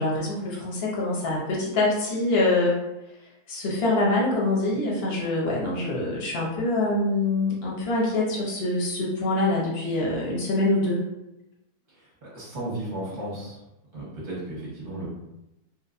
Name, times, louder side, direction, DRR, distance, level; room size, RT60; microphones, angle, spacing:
voice 1, 0.0-2.8 3.5-11.0, left 2 dB, 50° left, -3 dB, 0.9 m, -25 dB
voice 2, 12.2-13.6 13.9-15.1, right 1 dB, 35° right, -7 dB, 1.0 m, -34 dB
3.0 x 2.9 x 2.5 m, 0.92 s
omnidirectional pair, 1.7 m